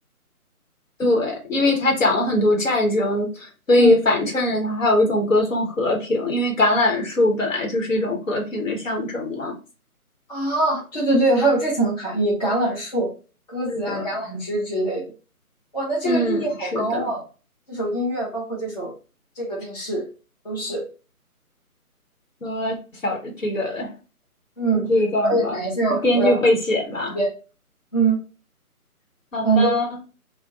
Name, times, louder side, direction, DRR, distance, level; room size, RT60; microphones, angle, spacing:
voice 1, 1.0-9.5 13.7-14.0 16.0-17.0 22.4-22.8 23.0-23.9 24.7-25.6 26.0-27.2 29.3-29.9, left 1 dB, 60° left, 0 dB, 1.1 m, -21 dB
voice 2, 10.3-13.1 13.5-15.1 15.7-17.2 17.7-18.9 19.4-20.0 20.4-20.8 24.6-24.8 25.2-26.4 27.1-27.3 27.9-28.2 29.4-29.7, right 2 dB, 30° left, -5 dB, 0.7 m, -23 dB
2.5 x 2.2 x 3.5 m, 0.34 s
figure-of-eight pair, 155°, 45 cm